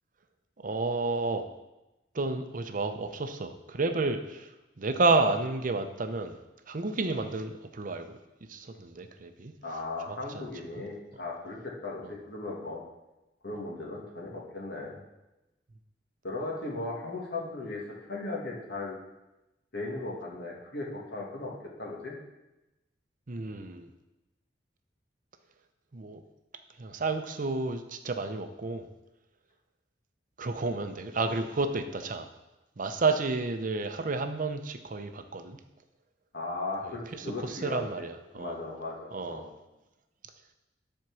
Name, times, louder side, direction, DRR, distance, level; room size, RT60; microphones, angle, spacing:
voice 1, 0.6-1.5 2.1-4.5 4.8-6.4 6.7-8.2 8.5-9.5 10.1-10.5 10.7-10.8 12.0-12.1 23.3-23.9 25.9-26.2 26.8-28.9 30.4-32.3 32.8-35.6 36.8-38.6 39.1-39.5, right 3 dB, 45° right, 8 dB, 0.6 m, -31 dB
voice 2, 9.6-12.8 13.4-15.0 16.2-17.8 18.1-19.0 19.7-21.5 21.8-22.1 36.3-38.0 38.3-39.5, left 2 dB, 65° left, -3 dB, 2.2 m, -37 dB
10.5 x 4.5 x 6.1 m, 0.99 s
head